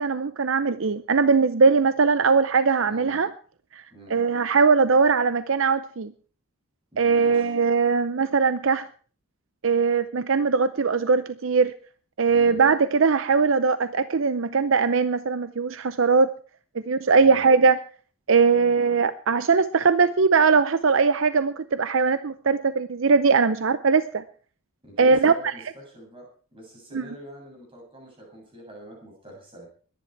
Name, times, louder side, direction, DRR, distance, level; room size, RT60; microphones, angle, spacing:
voice 1, 0.0-3.3 3.7-3.8 4.1-6.1 7.0-8.9 9.6-11.7 12.2-16.3 16.9-17.8 18.3-24.2 25.0-25.5 26.9-27.0, right 5 dB, 65° right, 13 dB, 0.6 m, -20 dB
voice 2, 2.9-3.2 3.9-4.2 6.9-7.6 12.3-12.6 17.2-17.5 18.5-18.7 24.8-26.3 26.5-29.7, equal, 25° right, -1 dB, 7.5 m, -45 dB
21.5 x 10.5 x 4.6 m, 0.42 s
head